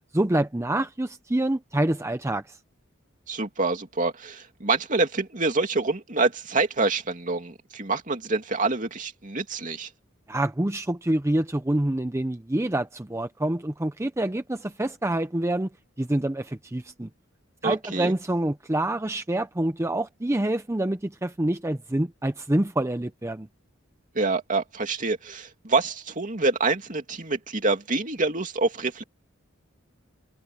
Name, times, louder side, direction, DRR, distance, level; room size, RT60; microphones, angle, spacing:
voice 1, 0.1-2.6 10.3-15.7 16.0-17.1 17.6-23.5, right 1 dB, 15° right, 0.6 m, -26 dB
voice 2, 3.3-9.9 17.6-18.2 24.1-29.0, right 3 dB, 40° right, 2.7 m, -26 dB
head